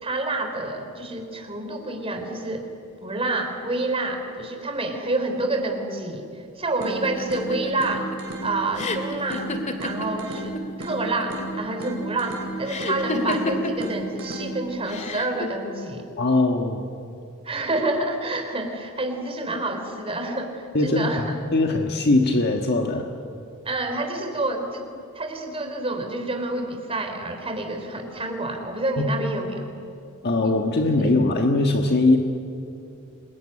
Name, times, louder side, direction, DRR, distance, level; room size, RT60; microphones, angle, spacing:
voice 1, 0.0-2.7 3.0-8.1 8.4-9.5 9.8-16.1 17.4-21.3 23.7-24.9 25.1-29.7 30.4-30.8 31.0-31.1, right 2 dB, 25° right, 4 dB, 3.6 m, -28 dB
sound 1, 6.8-14.8, right 2 dB, 60° right, 4.6 m, -34 dB
sound 2, 7.0-10.6 10.9-11.6 12.7-13.9 14.9-15.5, left 2 dB, 35° left, 2.2 m, -30 dB
voice 2, 16.2-16.9 20.7-21.1 21.5-23.1 29.0-29.1 30.2-32.2, left 2 dB, 50° left, 3 dB, 1.5 m, -21 dB
27.0 x 21.5 x 10.0 m, 2.6 s
head